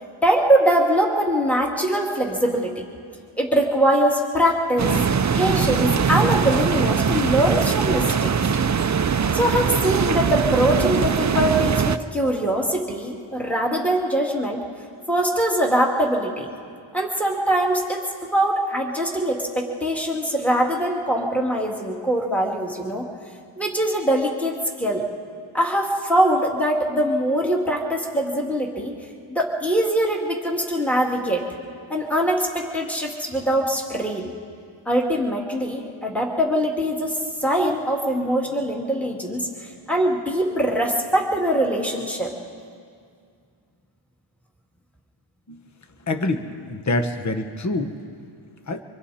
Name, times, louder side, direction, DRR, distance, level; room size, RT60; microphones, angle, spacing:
voice 1, 0.2-2.8 3.4-5.0 5.3-8.3 9.3-14.6 15.1-16.5 16.9-23.0 23.6-25.1 25.5-28.9 29.3-31.5 31.9-34.3 34.9-39.5 39.9-42.3, right 1 dB, 5° left, -1 dB, 2.5 m, -22 dB
sound 1, 4.8-12.0, right 6 dB, 35° right, 0.6 m, -21 dB
voice 2, 46.1-47.9 48.7-48.8, left 2 dB, 35° left, 7 dB, 1.2 m, -26 dB
26.0 x 25.0 x 4.3 m, 2.3 s
wide cardioid pair, 70°, 49 cm